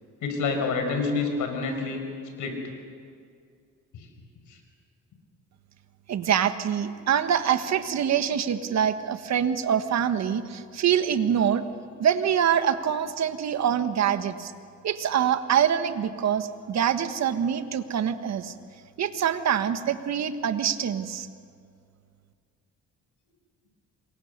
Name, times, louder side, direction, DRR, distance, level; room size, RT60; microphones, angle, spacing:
voice 1, 0.2-2.0 2.4-2.7 3.9-4.1 4.5-4.6, left 4 dB, 80° left, 4 dB, 5.3 m, -28 dB
voice 2, 6.1-11.6 12.0-14.5 14.8-18.5 19.0-21.3, right 8 dB, 60° right, 9 dB, 1.6 m, -25 dB
28.0 x 23.0 x 6.8 m, 2.2 s
cardioid pair, 90°, 30 cm